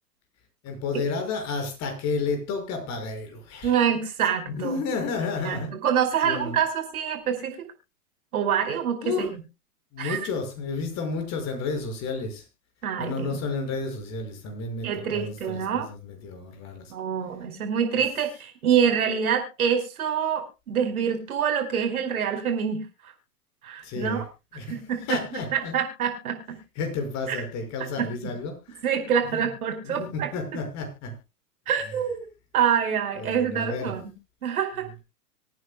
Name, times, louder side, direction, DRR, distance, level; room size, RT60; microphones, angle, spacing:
voice 1, 0.6-3.8 4.5-5.7 6.2-6.6 9.0-9.3 9.9-12.4 13.0-16.9 23.8-24.2 24.5-25.8 26.8-28.8 29.3-29.5 29.8-31.1 33.2-33.9, left 4 dB, 35° left, 5 dB, 5.8 m, -31 dB
voice 2, 3.6-4.8 5.4-7.7 8.3-9.4 10.0-10.2 12.8-13.4 14.8-15.9 16.9-23.1 23.6-24.3 24.7-25.2 25.5-26.6 27.3-27.4 28.0-28.1 28.8-30.3 31.7-32.3 32.5-34.1 34.4-34.9, right 8 dB, 65° right, 5 dB, 4.9 m, -26 dB
26.0 x 9.7 x 2.3 m, 0.27 s
hypercardioid pair, 110°, 46 cm